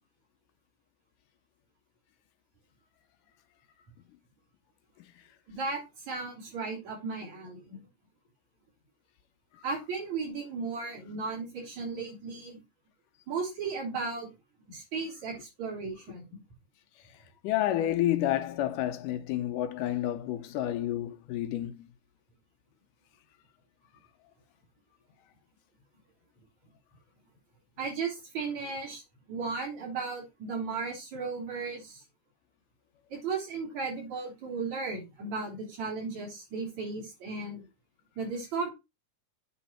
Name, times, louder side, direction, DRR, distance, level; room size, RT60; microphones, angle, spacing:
voice 1, 5.5-7.8 9.6-12.6 13.3-14.3 14.7-16.4 27.8-29.0 29.3-32.0 33.1-37.6 38.2-38.7, right 4 dB, 60° right, 4.8 m, -35 dB
voice 2, 17.4-21.8, left 13 dB, 85° left, 2.3 m, -29 dB
8.8 x 4.0 x 5.8 m
omnidirectional pair, 3.8 m